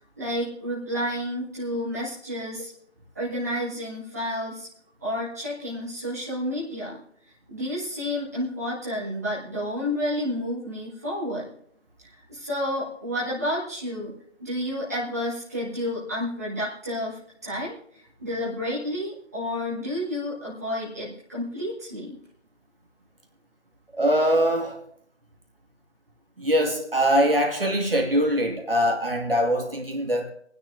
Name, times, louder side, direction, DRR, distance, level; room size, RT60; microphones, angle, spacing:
voice 1, 0.2-2.7 3.2-4.7 5.0-7.0 7.5-11.5 12.0-14.1 14.4-17.7 18.2-22.2, left 1 dB, 15° right, 1.7 m, -30 dB
voice 2, 23.9-24.8 26.4-30.3, equal, 50° right, 1.7 m, -22 dB
26.5 x 9.6 x 2.5 m
figure-of-eight pair, 170°, 37 cm